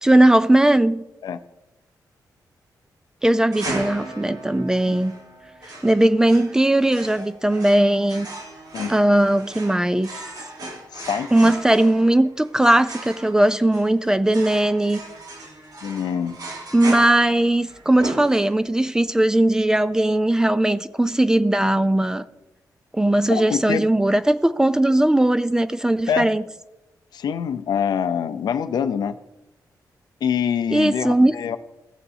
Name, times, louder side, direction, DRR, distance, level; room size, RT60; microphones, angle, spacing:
voice 1, 0.0-1.0 3.2-5.1 5.8-8.3 8.9-10.2 11.3-15.0 16.7-22.2 22.9-26.4 30.7-31.3, right 1 dB, 10° right, 13 dB, 0.3 m, -18 dB
sound 1, 3.5-18.9, right 2 dB, 60° right, 1.5 m, -36 dB
voice 2, 10.9-11.6 15.8-16.4 23.3-23.8 26.1-26.3 27.1-29.1 30.2-31.6, left 7 dB, 75° left, 11 dB, 0.5 m, -25 dB
16.0 x 6.8 x 2.7 m, 0.98 s
wide cardioid pair, 145°, 7 cm